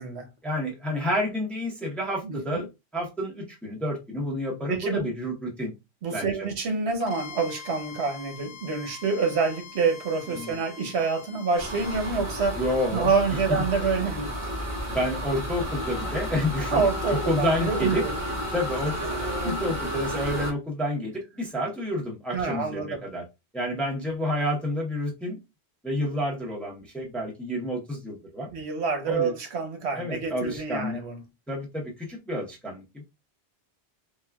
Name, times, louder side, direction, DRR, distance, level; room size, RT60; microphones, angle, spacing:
voice 1, 0.4-2.7 2.9-5.7 6.1-6.3 10.3-10.6 12.6-13.1 14.9-18.1 18.5-23.2 23.5-25.4 25.8-28.5 29.1-29.3 30.0-31.0 31.5-33.0, left 1 dB, ahead, 0.7 m, -29 dB
voice 2, 2.2-2.6 4.7-5.1 6.0-12.6 12.9-14.3 16.7-18.1 19.4-19.7 22.3-23.0 28.5-31.2, right 4 dB, 80° right, 1.0 m, -27 dB
Bowed string instrument, 7.0-12.2, left 6 dB, 85° left, 0.9 m, -44 dB
sound 1, 11.6-20.5, equal, 55° right, 1.4 m, -32 dB
3.6 x 2.3 x 2.2 m
omnidirectional pair, 1.1 m